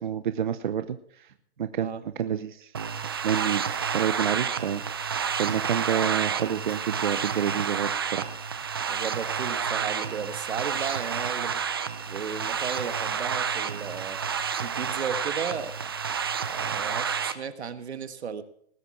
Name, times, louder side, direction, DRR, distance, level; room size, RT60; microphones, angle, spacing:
voice 1, 0.0-1.3 1.6-2.7 3.2-3.6 3.9-8.3, right 8 dB, 45° right, 10 dB, 0.8 m, -29 dB
sound 1, 2.7-17.3, right 7 dB, 20° right, 0.5 m, -30 dB
voice 2, 8.9-11.6 12.1-14.2 14.5-15.9 16.5-18.4, right 6 dB, 70° right, 11 dB, 1.7 m, -35 dB
19.5 x 8.6 x 4.7 m, 0.67 s
hypercardioid pair, 170°, 34 cm